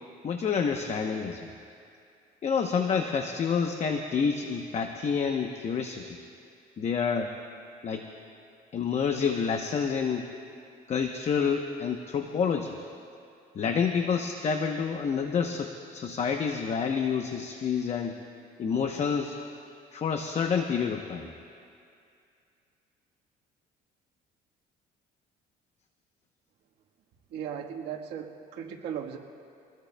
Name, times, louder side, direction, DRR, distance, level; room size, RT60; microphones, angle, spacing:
voice 1, 0.2-1.5 2.4-6.2 6.8-7.3 7.8-8.1 8.7-10.3 10.9-12.8 13.5-18.2 18.6-19.4 19.9-21.3, left 6 dB, 40° left, 4 dB, 0.9 m, -28 dB
voice 2, 27.3-29.2, right 8 dB, 80° right, -1 dB, 1.4 m, -37 dB
26.0 x 20.0 x 2.3 m, 2.4 s
cardioid pair, 110°, 17 cm